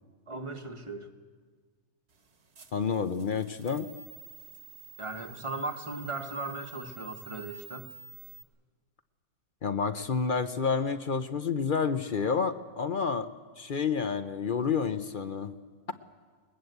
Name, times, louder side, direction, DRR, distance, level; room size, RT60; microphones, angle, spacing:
voice 1, 0.3-1.1 5.0-7.9, right 3 dB, 25° right, 5 dB, 1.2 m, -37 dB
sound 1, 2.1-8.4, right 6 dB, 50° right, 1.6 m, -50 dB
voice 2, 2.7-3.9 9.6-13.3 13.6-15.5, left 5 dB, 45° left, 10 dB, 0.7 m, -29 dB
21.0 x 21.0 x 8.0 m, 1.5 s
omnidirectional pair, 1.5 m